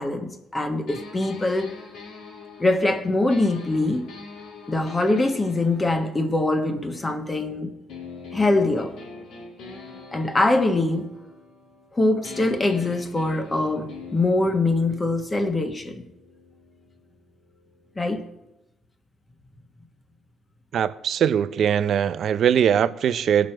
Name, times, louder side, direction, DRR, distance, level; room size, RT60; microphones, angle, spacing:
voice 1, 0.0-1.7 2.6-4.1 4.7-7.7 8.3-8.9 10.1-11.1 11.9-16.0 18.0-18.2, left 2 dB, 25° left, 1.3 m, -23 dB
sound 1, 0.9-7.4 7.9-11.9 12.2-18.0, left 4 dB, 85° left, 2.3 m, -44 dB
voice 2, 20.7-23.5, right 8 dB, 65° right, 0.5 m, -21 dB
18.5 x 6.3 x 4.4 m
cardioid pair, 90°, 0 cm